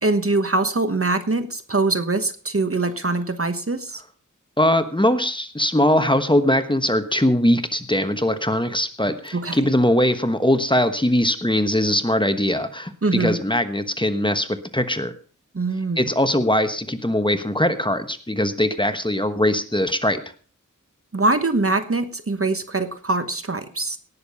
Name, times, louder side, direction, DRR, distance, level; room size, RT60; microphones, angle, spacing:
voice 1, 0.0-4.0 9.3-9.6 13.0-13.4 15.5-16.1 21.1-24.0, right 3 dB, 45° right, 10 dB, 1.2 m, -23 dB
voice 2, 4.6-15.1 16.0-20.2, left 1 dB, 15° left, 9 dB, 1.2 m, -21 dB
18.0 x 6.9 x 5.4 m, 0.41 s
wide cardioid pair, 45°, 32 cm